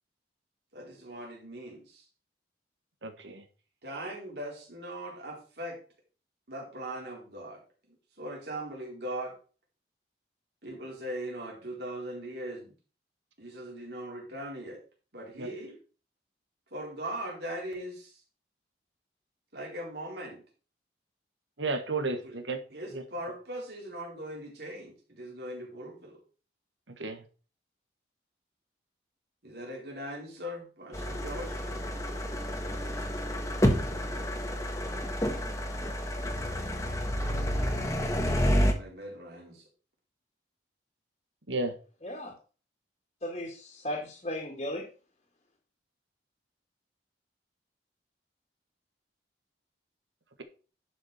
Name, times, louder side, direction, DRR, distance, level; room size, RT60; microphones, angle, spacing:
voice 1, 0.7-2.1 3.8-5.8 6.5-7.6 7.9-9.3 10.6-12.7 13.4-14.8 15.1-15.8 16.7-18.2 19.5-20.4 22.2-22.4 22.7-26.2 29.4-31.7 38.0-39.7, right 1 dB, 60° right, 4.2 m, -40 dB
voice 2, 3.0-3.4 15.4-15.5 21.6-22.6 27.0-27.2 41.5-41.7, right 3 dB, 85° right, 1.6 m, -32 dB
sound 1, 30.9-38.7, equal, 15° left, 1.4 m, -29 dB
voice 3, 42.0-42.3 43.2-44.9, left 1 dB, 35° left, 2.3 m, -36 dB
11.5 x 6.1 x 4.4 m
head